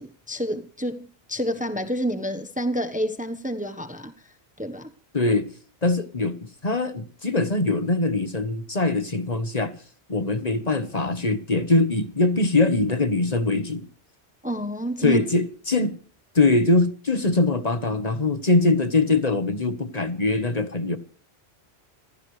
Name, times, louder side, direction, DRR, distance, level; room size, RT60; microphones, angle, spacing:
voice 1, 0.0-4.1 4.6-4.9 14.4-15.2, equal, 10° right, 1.0 m, -29 dB
voice 2, 5.1-5.5 5.8-9.7 10.1-13.9 15.0-16.0 16.3-21.0, left 2 dB, 40° left, 1.4 m, -22 dB
26.5 x 15.5 x 3.3 m
omnidirectional pair, 1.1 m